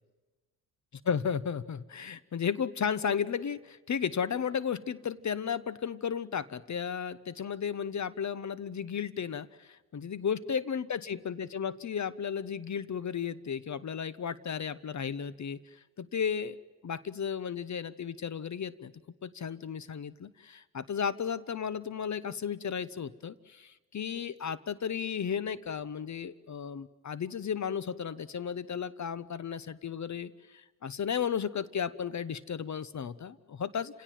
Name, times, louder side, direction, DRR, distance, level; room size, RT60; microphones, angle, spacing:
voice 1, 1.0-16.6 16.8-18.9 19.2-34.0, left 7 dB, 35° left, 19 dB, 1.1 m, -34 dB
29.5 x 17.0 x 9.3 m, 1.2 s
supercardioid pair, 65°, 47 cm